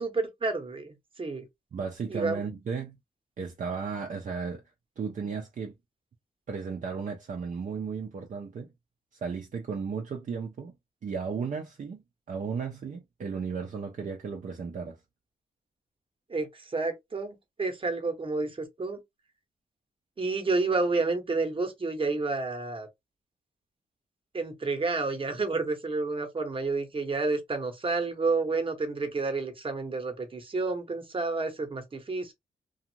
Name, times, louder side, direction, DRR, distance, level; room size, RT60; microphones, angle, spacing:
voice 1, 0.0-1.4 2.1-2.4 16.3-19.0 20.2-22.9 24.3-32.3, right 3 dB, 35° right, 0.9 m, -30 dB
voice 2, 1.7-3.0 3.4-4.6 5.0-5.8 6.5-8.7 9.1-10.7 11.0-15.0, right 5 dB, 55° right, 0.6 m, -35 dB
2.5 x 2.4 x 2.8 m
cardioid pair, 85°, 16 cm